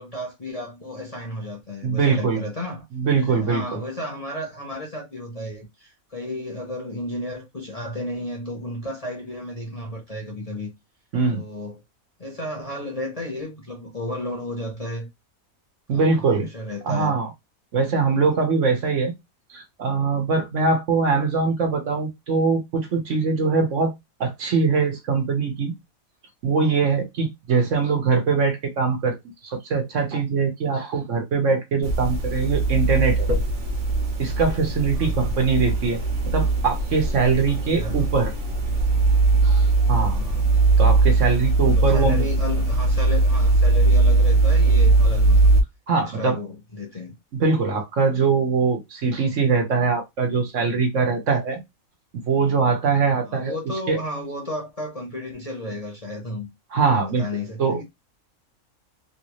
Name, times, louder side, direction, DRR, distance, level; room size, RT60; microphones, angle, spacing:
voice 1, 0.0-2.8 3.2-10.7 11.3-11.8 12.2-15.1 15.9-16.0 16.4-17.2 34.9-35.1 37.5-38.1 40.0-40.5 41.6-45.4 45.9-47.2 53.2-56.5 56.9-57.8, left 1 dB, 30° left, 0.8 m, -33 dB
voice 2, 1.8-2.4 2.9-3.8 11.1-11.4 15.9-16.5 16.8-17.3 17.7-19.1 19.5-23.9 24.2-25.7 26.4-29.2 29.4-33.3 34.2-36.0 36.3-38.3 39.4-40.2 40.8-42.2 45.9-46.4 47.3-51.6 52.3-53.5 53.9-54.0 56.7-57.3 57.6-57.8, right 4 dB, 60° right, 1.2 m, -22 dB
sound 1, 31.8-45.6, right 3 dB, 40° right, 1.0 m, -20 dB
3.2 x 2.7 x 3.0 m
omnidirectional pair, 1.5 m